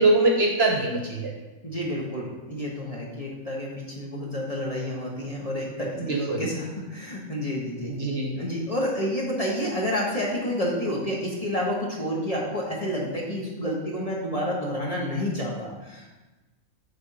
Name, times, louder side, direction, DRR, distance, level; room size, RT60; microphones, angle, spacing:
voice 1, 0.0-1.3 6.0-6.4 7.9-8.3, right 2 dB, 55° right, 1 dB, 1.0 m, -23 dB
voice 2, 1.6-7.9 8.3-16.1, equal, 30° left, -4 dB, 1.2 m, -29 dB
6.7 x 3.7 x 5.3 m, 1.1 s
omnidirectional pair, 1.4 m